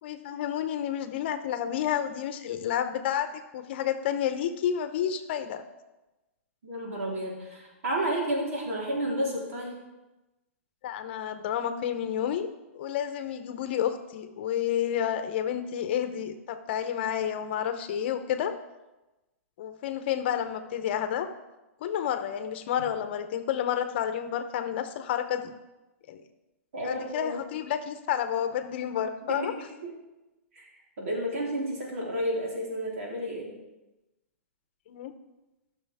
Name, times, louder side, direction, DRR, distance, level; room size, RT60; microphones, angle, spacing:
voice 1, 0.0-5.6 10.8-12.5 12.7-18.5 19.6-21.3 21.8-25.5 26.1-26.2 26.8-29.5 34.9-35.1, left 9 dB, 50° left, 9 dB, 0.8 m, -30 dB
voice 2, 6.6-9.8 26.7-27.4 29.2-29.4 29.8-29.9 30.5-30.7 31.0-33.5, equal, 75° right, -3 dB, 3.6 m, -31 dB
14.5 x 6.3 x 3.5 m, 1.0 s
hypercardioid pair, 155°, 8 cm